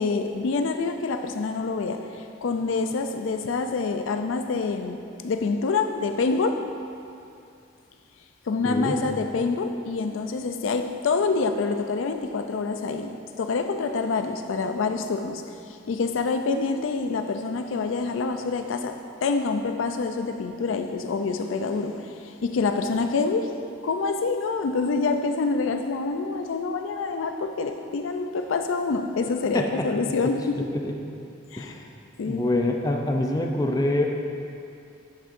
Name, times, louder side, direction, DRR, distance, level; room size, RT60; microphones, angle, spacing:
voice 1, 0.0-6.6 8.5-23.5 23.8-30.7 31.5-31.7 32.2-32.5, left 4 dB, 80° left, 7 dB, 0.4 m, -26 dB
voice 2, 8.6-9.0 29.5-29.9 30.7-31.0 31.6-31.9 32.3-34.1, left 1 dB, 20° left, 2 dB, 0.4 m, -25 dB
10.5 x 6.3 x 2.5 m, 2.5 s
head